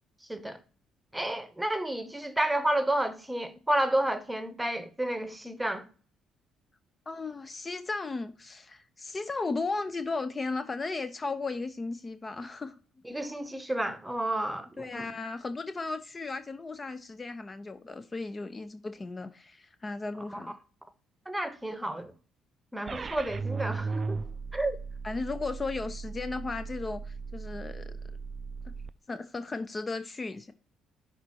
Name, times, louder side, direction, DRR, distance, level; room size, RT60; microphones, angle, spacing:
voice 1, 1.1-5.8 13.0-15.0 21.3-22.1 22.7-24.2 24.5-24.8, right 1 dB, 10° right, 1.0 m, -30 dB
voice 2, 7.1-12.7 14.8-20.5 25.0-28.0 29.1-30.5, left 3 dB, 30° left, 0.6 m, -35 dB
sound 1, 22.9-28.9, right 4 dB, 40° right, 0.3 m, -37 dB
5.9 x 4.2 x 4.1 m
supercardioid pair, 65°, 0 cm